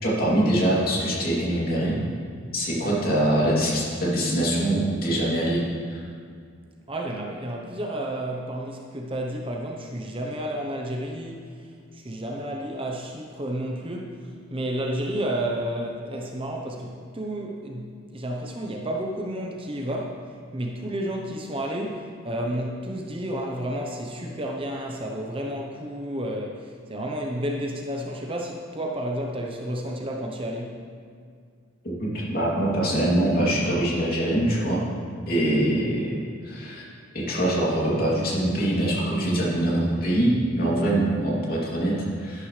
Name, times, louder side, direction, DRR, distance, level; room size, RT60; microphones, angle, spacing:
voice 1, 0.0-2.0 2.5-5.6 5.9-6.0 31.8-34.8 35.3-36.2 36.4-36.8 37.1-42.5, right 1 dB, 45° left, -5 dB, 3.0 m, -23 dB
voice 2, 6.9-11.4 11.9-20.2 20.5-30.8, right 1 dB, 25° right, 0 dB, 0.9 m, -31 dB
12.0 x 11.5 x 3.3 m, 2.2 s
head